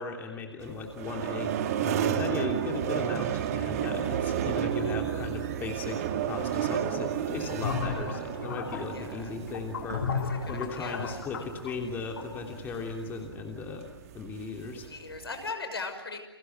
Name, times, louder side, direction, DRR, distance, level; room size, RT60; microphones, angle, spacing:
voice 1, 0.0-10.1 10.5-13.9 14.1-14.9, left 4 dB, 15° left, 2 dB, 3.0 m, -37 dB
sound 1, 0.6-15.5, right 9 dB, 35° right, 2.1 m, -33 dB
sound 2, 7.4-12.7, left 5 dB, 55° left, 4.4 m, -34 dB
voice 2, 8.9-9.3 10.1-10.2 10.5-11.2 14.7-16.2, left 4 dB, 70° left, 6 dB, 5.9 m, -38 dB
30.0 x 23.5 x 8.0 m, 1.1 s
figure-of-eight pair, 130°, 13 cm